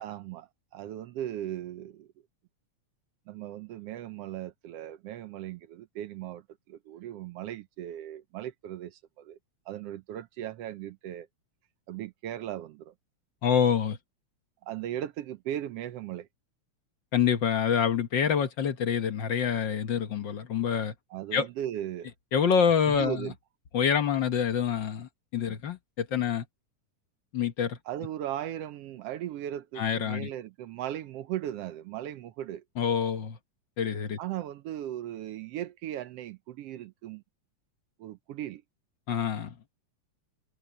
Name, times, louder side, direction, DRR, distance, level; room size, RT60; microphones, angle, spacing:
voice 1, 0.0-2.1 3.3-9.4 9.7-11.3 11.9-12.9 14.6-16.3 21.1-22.1 22.9-23.3 27.9-32.6 34.2-37.2 38.0-38.6, right 12 dB, 70° right, 1.5 m, -37 dB
voice 2, 13.4-14.0 17.1-20.9 21.3-21.5 22.3-23.3 23.7-26.4 27.3-27.8 29.8-30.3 32.8-33.4 33.8-34.2 39.1-39.6, left 7 dB, 60° left, 1.2 m, -26 dB
omnidirectional pair, 3.4 m